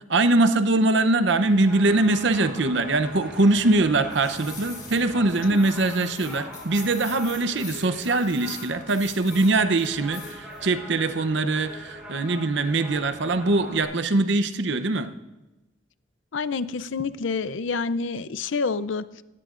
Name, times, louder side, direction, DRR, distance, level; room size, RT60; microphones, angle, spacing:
voice 1, 0.1-15.1, right 2 dB, 65° right, 10 dB, 0.8 m, -22 dB
sound 1, 1.3-13.8, equal, 5° right, 5.6 m, -42 dB
sound 2, 4.1-5.0 5.3-9.5 9.8-10.6 10.9-11.1, left 5 dB, 20° left, 3.4 m, -43 dB
voice 2, 16.3-19.2, left 4 dB, 75° left, 15 dB, 0.5 m, -28 dB
18.5 x 16.0 x 2.5 m, 1.0 s
head